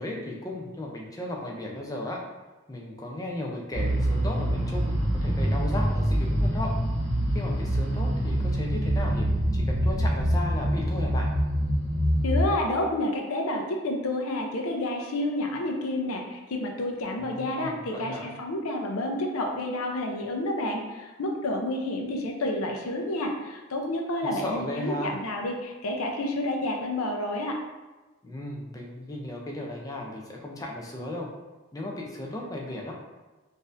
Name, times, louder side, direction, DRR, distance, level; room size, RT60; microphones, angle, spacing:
voice 1, 0.0-2.2 2.7-6.7 7.3-9.3 9.5-11.3 17.2-18.3 24.2-25.2 28.2-31.3 31.7-32.9, left 1 dB, 15° left, -1 dB, 0.4 m, -35 dB
sound 1, 3.7-12.5, equal, 45° right, 1.5 m, -25 dB
voice 2, 12.2-27.6, left 1 dB, 75° left, 1 dB, 0.6 m, -29 dB
4.0 x 2.6 x 2.5 m, 1.2 s
head